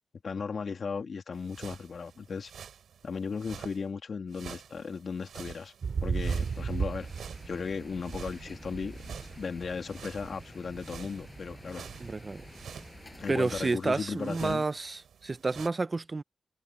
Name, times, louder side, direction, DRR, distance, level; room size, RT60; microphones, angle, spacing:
voice 1, 0.2-2.5 3.0-5.7 6.0-7.1 7.5-11.9 13.2-14.6, left 5 dB, 55° left, 2.8 m, -36 dB
sound 1, 1.3-3.8 4.3-15.7, right 8 dB, 85° right, 5.0 m, -49 dB
sound 2, 5.8-13.7, right 5 dB, 55° right, 5.8 m, -37 dB
sound 3, 6.3-13.7, left 2 dB, 20° left, 5.5 m, -50 dB
voice 2, 12.0-12.4 13.3-16.2, right 3 dB, 30° right, 0.8 m, -30 dB
wide cardioid pair, 115°, 0 cm